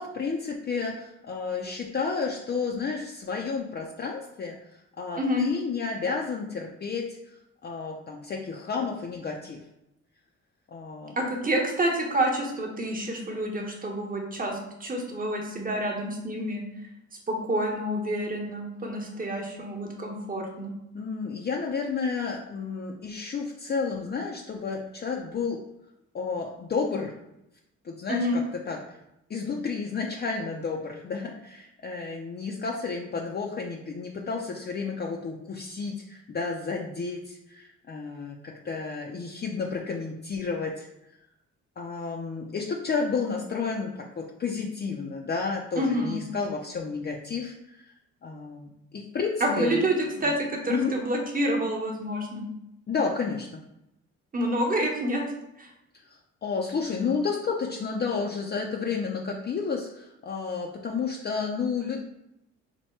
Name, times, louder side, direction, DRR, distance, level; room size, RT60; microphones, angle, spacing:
voice 1, 0.0-7.4 7.6-9.6 10.7-11.1 20.9-25.6 26.1-27.1 27.8-29.0 29.3-40.9 41.8-47.9 48.2-49.8 50.2-50.3 50.7-50.9 52.9-53.6 56.1-62.0, left 5 dB, 35° left, 0 dB, 0.5 m, -31 dB
voice 2, 5.2-5.5 11.2-16.6 17.3-20.7 28.1-28.4 45.8-46.3 49.4-52.4 54.3-55.2 55.6-55.7, right 1 dB, 30° right, 1 dB, 1.1 m, -28 dB
4.3 x 2.2 x 4.4 m, 0.86 s
cardioid pair, 90°, 30 cm